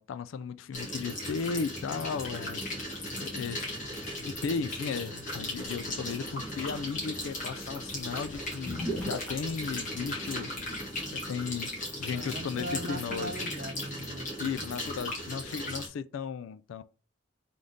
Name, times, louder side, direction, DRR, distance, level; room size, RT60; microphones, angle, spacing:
voice 1, 0.0-2.6 3.2-3.6 4.2-11.7 12.0-13.3 14.4-16.8, left 5 dB, 75° left, 0.3 m, -35 dB
sound 1, 0.7-15.9, left 1 dB, 40° left, 1.8 m, -37 dB
sound 2, 5.7-11.1, right 1 dB, 5° left, 1.4 m, -42 dB
voice 2, 12.1-14.6, right 1 dB, 45° right, 0.7 m, -39 dB
3.9 x 3.5 x 3.8 m
head